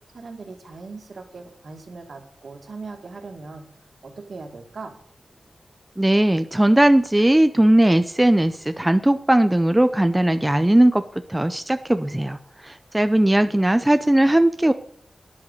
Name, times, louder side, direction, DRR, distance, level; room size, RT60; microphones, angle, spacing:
voice 1, 0.1-4.9 13.4-13.5, right 3 dB, 65° right, 4 dB, 2.2 m, -39 dB
voice 2, 6.0-11.0 11.3-14.7, right 1 dB, 10° right, 9 dB, 0.5 m, -18 dB
11.0 x 7.9 x 6.7 m, 0.63 s
wide cardioid pair, 95°, 0 cm